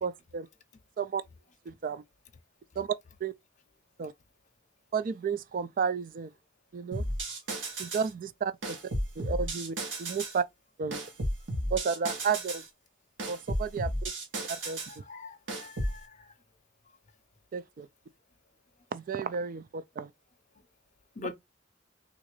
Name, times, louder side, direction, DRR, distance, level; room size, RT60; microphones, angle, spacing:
voice 1, 0.0-0.5 1.0-1.2 1.7-2.0 2.8-3.0 3.2-3.3 4.0-4.1 4.9-6.3 6.7-7.0 7.8-8.5 9.2-10.4 10.8-11.0 11.7-12.6 13.3-14.1 14.5-14.8 17.5-17.9 18.9-20.1, right 6 dB, 45° right, 0.3 m, -32 dB
sound 1, 6.9-8.1 8.6-10.4 10.9-12.7 13.2-15.0 15.5-16.0, right 1 dB, 90° right, 1.3 m, -34 dB
voice 2, 14.6-16.3 21.2-21.3, left 3 dB, 40° left, 0.5 m, -44 dB
3.6 x 2.5 x 3.1 m
head